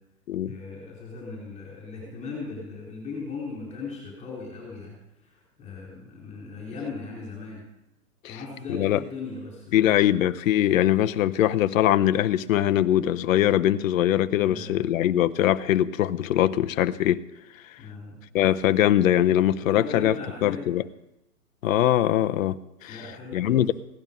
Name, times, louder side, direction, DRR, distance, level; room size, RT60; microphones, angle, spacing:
voice 1, 0.4-5.0 5.2-7.6 8.3-10.1 14.4-14.8 17.8-18.2 19.6-20.7 22.9-23.7, left 4 dB, 15° left, 4.1 m, -38 dB
voice 2, 8.7-9.0 9.7-17.2 18.3-20.1 20.4-20.8 21.6-23.0 23.3-23.7, left 12 dB, 55° left, 0.8 m, -22 dB
16.5 x 11.0 x 5.4 m
hypercardioid pair, 145°, 47 cm